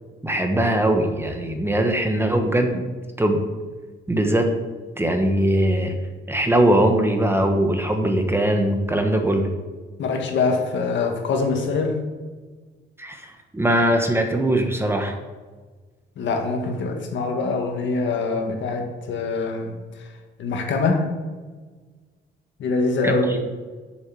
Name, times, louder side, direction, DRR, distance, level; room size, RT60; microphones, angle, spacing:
voice 1, 0.2-2.8 3.2-3.4 4.1-4.5 5.0-5.9 6.3-9.5 13.0-15.1 23.0-23.2, right 1 dB, 10° right, 4 dB, 1.2 m, -21 dB
voice 2, 10.0-12.0 16.2-19.8 20.4-21.1 22.6-23.5, left 4 dB, 70° left, 3 dB, 1.7 m, -24 dB
7.2 x 6.5 x 6.3 m, 1.4 s
cardioid pair, 90°, 20 cm